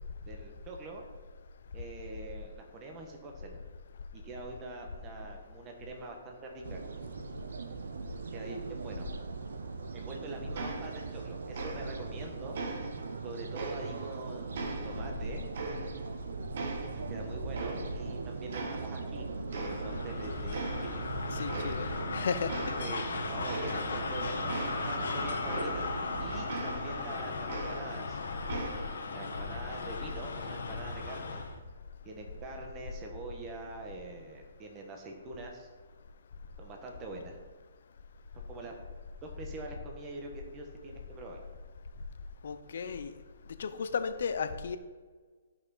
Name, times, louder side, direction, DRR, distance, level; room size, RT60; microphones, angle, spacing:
voice 1, 0.3-1.0 1.7-3.6 4.1-6.8 8.3-9.1 9.9-12.6 13.2-15.5 17.1-19.3 19.5-21.0 22.8-25.9 26.2-28.2 29.0-31.4 32.0-35.7 36.6-37.4 38.3-38.7 39.2-41.4, right 2 dB, 20° right, 2 dB, 1.2 m, -44 dB
sound 1, 6.6-26.5, right 4 dB, 85° right, 0.7 m, -40 dB
sound 2, 10.5-11.3 11.5-12.2 12.5-14.2 14.5-16.2 16.5-18.2 18.5-19.2 19.5-20.2 20.5-21.1 21.5-22.1 22.5-26.1 26.5-28.1 28.5-29.1, right 3 dB, 55° right, 1.4 m, -40 dB
sound 3, 19.5-31.6, left 4 dB, 85° left, 1.4 m, -37 dB
voice 2, 21.3-22.6 42.4-43.1 43.6-44.8, left 6 dB, 65° left, 10 dB, 0.7 m, -34 dB
13.0 x 5.7 x 4.1 m, 1.4 s
hypercardioid pair, 160°, 0 cm